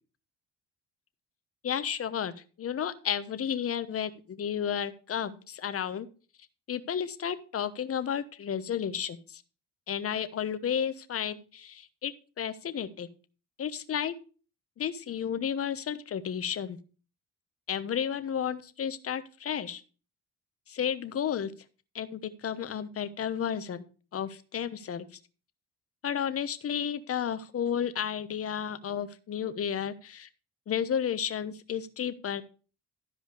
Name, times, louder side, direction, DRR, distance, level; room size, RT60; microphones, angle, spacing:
voice 1, 1.6-6.1 6.7-9.4 9.9-13.1 13.6-14.1 14.8-16.8 17.7-19.8 20.7-21.5 21.9-23.8 24.1-25.0 26.0-30.3 30.7-32.4, left 8 dB, 50° left, 11 dB, 1.0 m, -32 dB
13.0 x 5.0 x 4.9 m, 0.37 s
cardioid pair, 90°, 30 cm